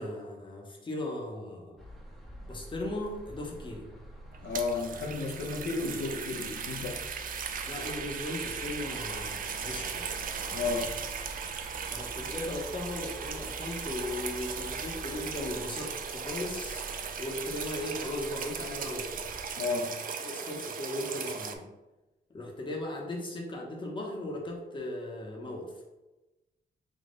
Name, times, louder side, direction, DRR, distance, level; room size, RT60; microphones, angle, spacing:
voice 1, 0.0-1.8 2.5-3.9 7.7-10.1 11.8-16.8 17.2-19.2 20.2-21.6 22.3-25.7, left 1 dB, 30° left, -1 dB, 0.9 m, -37 dB
sound 1, 1.8-19.5, equal, ahead, 0.8 m, -47 dB
sound 2, 4.3-21.6, right 6 dB, 50° right, 0.4 m, -37 dB
voice 2, 4.4-7.0 10.5-10.9 19.6-19.9, left 4 dB, 70° left, -1 dB, 0.7 m, -32 dB
3.7 x 2.3 x 3.8 m, 1.0 s
cardioid pair, 90°, 18 cm